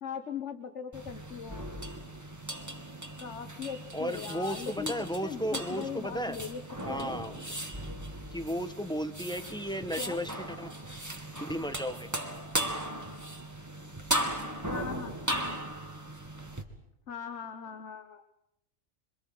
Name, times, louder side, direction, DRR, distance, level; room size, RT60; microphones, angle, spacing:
voice 1, 0.0-1.6 3.2-6.6 6.9-7.2 10.0-10.2 14.7-15.2 17.1-18.2, left 7 dB, 80° left, 9 dB, 1.6 m, -39 dB
sound 1, 0.9-16.6, right 1 dB, 15° right, 2.2 m, -37 dB
voice 2, 3.9-6.4 6.8-7.5 8.3-10.7 11.4-12.1, equal, 5° left, 9 dB, 1.2 m, -34 dB
26.5 x 25.0 x 7.8 m, 0.81 s
omnidirectional pair, 1.2 m